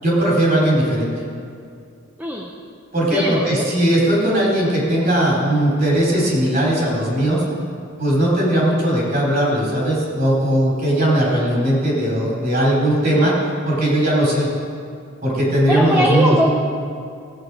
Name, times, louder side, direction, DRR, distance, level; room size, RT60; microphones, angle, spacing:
voice 1, 0.0-1.1 2.9-7.4 8.0-13.3 13.7-14.5 15.2-16.5, right 1 dB, 45° right, -5 dB, 3.9 m, -18 dB
voice 2, 2.2-2.5 3.1-3.7 13.0-13.3 15.7-16.5, equal, 10° right, -1 dB, 0.6 m, -21 dB
16.5 x 8.8 x 4.8 m, 2.4 s
head